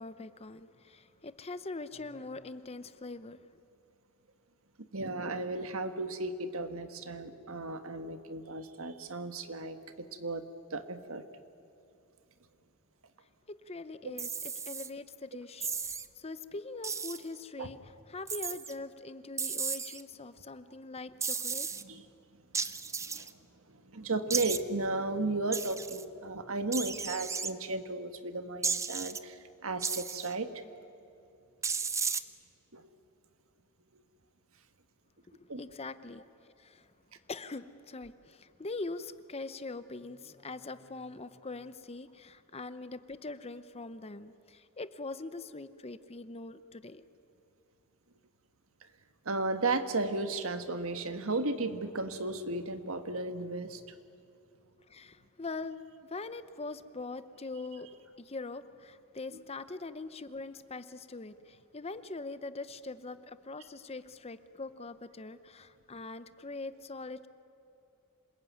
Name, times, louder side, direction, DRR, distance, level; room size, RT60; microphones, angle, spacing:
voice 1, 0.0-3.4 13.5-14.3 14.7-21.7 35.4-36.9 37.3-47.1 54.9-57.9 58.2-67.3, left 3 dB, 25° left, 13 dB, 0.8 m, -42 dB
voice 2, 4.8-9.8 10.1-10.4 10.7-11.2 14.0-14.2 17.6-17.7 21.8-22.0 23.1-23.3 23.7-30.5 32.7-32.9 35.5-35.6 49.2-53.8, right 2 dB, 65° right, 9 dB, 1.6 m, -34 dB
sound 1, 14.2-14.9 15.6-16.1 16.8-17.2 18.3-18.7 19.4-20.0 21.2-21.8 22.5-23.3 24.3-24.6 25.5-26.0 26.7-27.5 28.6-29.2 29.8-30.3 31.6-32.2, right 5 dB, 15° right, 0.6 m, -34 dB
27.0 x 21.0 x 9.6 m, 2.8 s
head